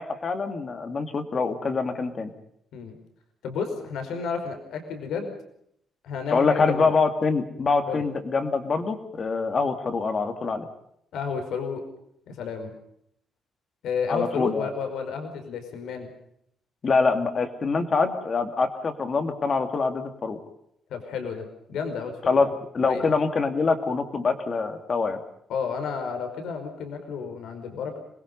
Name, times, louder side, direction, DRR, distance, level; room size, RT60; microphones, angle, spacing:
voice 1, 0.0-2.3 6.3-10.6 14.1-14.7 16.8-20.4 22.3-22.5 22.7-25.2, left 4 dB, 35° left, 7 dB, 2.6 m, -25 dB
voice 2, 3.4-5.3 6.0-6.9 7.9-8.0 11.1-11.8 12.3-12.7 13.8-16.1 20.9-22.4 22.8-23.1 25.5-28.0, left 5 dB, 75° left, 6 dB, 5.1 m, -31 dB
26.5 x 21.5 x 5.5 m, 0.72 s
cardioid pair, 160°, 0 cm